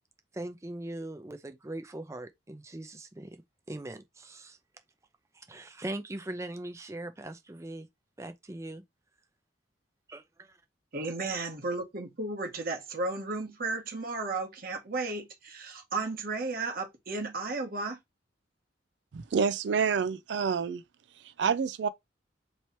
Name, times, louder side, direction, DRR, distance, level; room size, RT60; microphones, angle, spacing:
voice 1, 0.3-3.4 3.7-4.6 5.3-7.9 8.2-8.8 10.1-10.6, right 1 dB, 15° right, 0.5 m, -40 dB
voice 2, 10.9-18.0, right 3 dB, 50° right, 1.1 m, -34 dB
voice 3, 19.1-20.8 21.4-21.9, right 6 dB, 70° right, 0.4 m, -28 dB
3.1 x 2.9 x 4.3 m
head